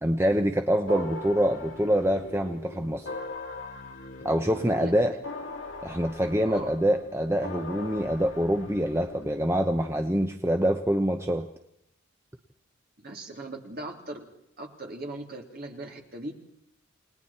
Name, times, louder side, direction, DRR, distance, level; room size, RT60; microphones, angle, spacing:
voice 1, 0.0-3.1 4.2-5.1 5.8-11.5, equal, 10° right, 5 dB, 0.9 m, -25 dB
sound 1, 0.9-9.6, left 2 dB, 55° left, 2.2 m, -41 dB
voice 2, 4.4-5.2 6.4-6.7 13.0-14.2 14.6-16.3, right 1 dB, 45° right, 1 dB, 3.3 m, -39 dB
29.5 x 20.0 x 4.4 m, 0.78 s
head